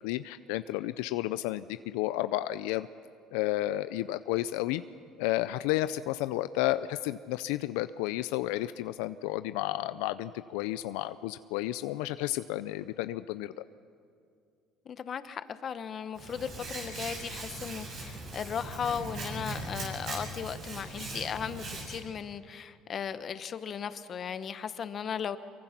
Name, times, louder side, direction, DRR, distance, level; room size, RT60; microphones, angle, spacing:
voice 1, 0.0-2.9 3.3-4.8 5.2-13.5, left 15 dB, 90° left, 0.4 m, -32 dB
voice 2, 14.8-25.4, left 7 dB, 45° left, 1.1 m, -36 dB
Hands, 16.2-22.0, right 2 dB, 50° right, 7.6 m, -40 dB
25.0 x 23.0 x 5.9 m
supercardioid pair, 100°, 0 cm